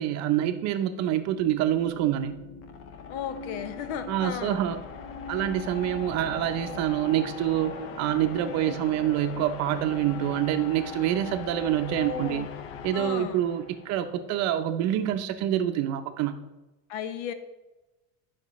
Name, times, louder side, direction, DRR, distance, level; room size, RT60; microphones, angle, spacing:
voice 1, 0.0-2.4 4.1-4.8 5.3-12.5 12.8-16.4, right 11 dB, 50° right, 9 dB, 0.6 m, -26 dB
sound 1, 1.0-14.1, left 6 dB, 40° left, 0.5 m, -40 dB
voice 2, 3.1-4.6 8.7-8.8 11.8-12.5 12.9-13.4 16.9-17.3, left 8 dB, 80° left, 11 dB, 0.8 m, -35 dB
11.0 x 6.0 x 3.1 m, 1.1 s
cardioid pair, 155°, 35 cm